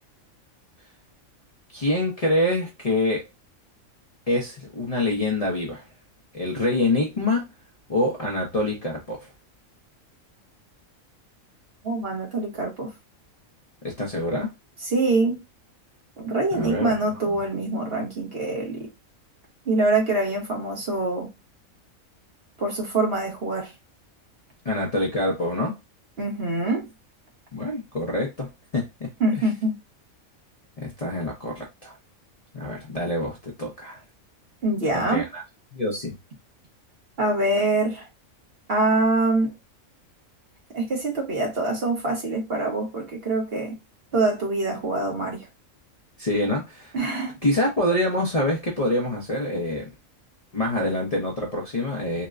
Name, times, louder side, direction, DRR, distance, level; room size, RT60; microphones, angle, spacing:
voice 1, 1.7-3.2 4.3-5.8 6.3-7.5 7.9-9.3 13.8-14.5 16.5-16.9 17.3-17.4 24.6-25.8 27.5-29.1 29.4-29.5 30.8-32.0 32.5-34.0 34.9-35.4 35.7-36.1 46.2-46.9 47.4-49.9 50.5-52.3, left 1 dB, 35° left, 0.7 m, -26 dB
voice 2, 11.8-12.9 14.8-15.4 16.2-18.9 19.7-21.3 22.6-23.7 26.2-26.9 29.2-29.7 34.6-35.3 37.2-38.1 38.7-39.5 40.7-43.8 44.1-45.5 46.9-47.4, right 2 dB, 50° right, 1.2 m, -24 dB
3.9 x 2.1 x 2.4 m
omnidirectional pair, 1.4 m